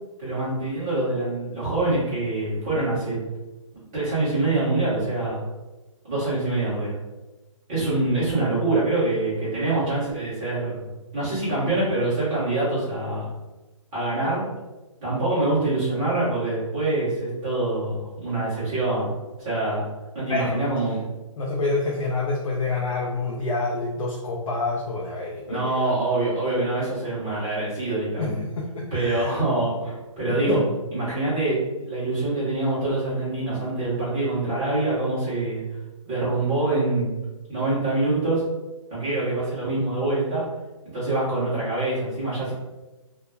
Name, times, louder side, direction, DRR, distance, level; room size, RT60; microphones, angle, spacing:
voice 1, 0.2-3.2 3.9-5.4 6.0-6.9 7.7-10.9 11.1-13.3 13.9-14.4 15.0-19.1 19.4-19.9 20.1-21.0 25.5-28.3 28.9-30.6 30.9-35.6 36.1-37.1 37.5-38.4 38.9-40.4 40.9-42.5, right 2 dB, 10° right, -11 dB, 0.5 m, -25 dB
voice 2, 20.3-20.6 21.4-25.9 28.2-29.4 30.3-30.6, left 3 dB, 90° left, -2 dB, 0.5 m, -27 dB
2.2 x 2.1 x 3.2 m, 1.1 s
hypercardioid pair, 180°, 17 cm